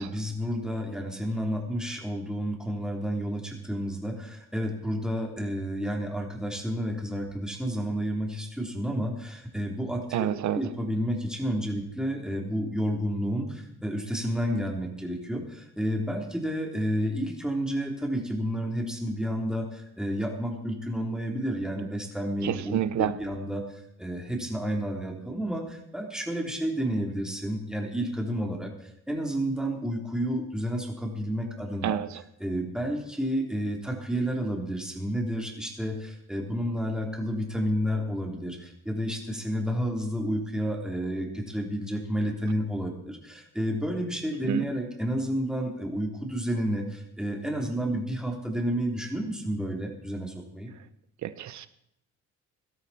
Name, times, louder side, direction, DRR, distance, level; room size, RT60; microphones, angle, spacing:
voice 1, 0.0-10.3 10.5-32.0 32.4-50.7, equal, ahead, 0 dB, 3.4 m, -30 dB
voice 2, 10.1-10.6 22.4-23.1 31.8-32.1 44.5-44.6 51.2-51.7, right 11 dB, 70° right, 14 dB, 1.0 m, -28 dB
17.5 x 13.0 x 4.3 m, 0.77 s
cardioid pair, 90°, 30 cm